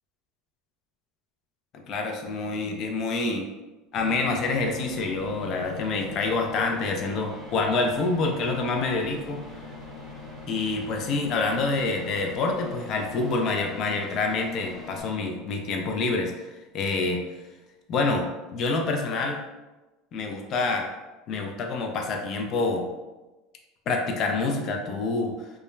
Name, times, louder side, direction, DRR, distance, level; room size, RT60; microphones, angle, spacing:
voice 1, 1.9-3.5 3.9-9.4 10.5-16.5 16.7-17.2 17.9-19.4 20.1-20.9 21.3-22.9 23.9-25.5, left 3 dB, 45° left, 2 dB, 0.4 m, -27 dB
sound 1, 4.0-15.0, left 3 dB, 10° left, 0.7 m, -42 dB
2.3 x 2.1 x 3.0 m, 1.1 s
supercardioid pair, 120°, 0 cm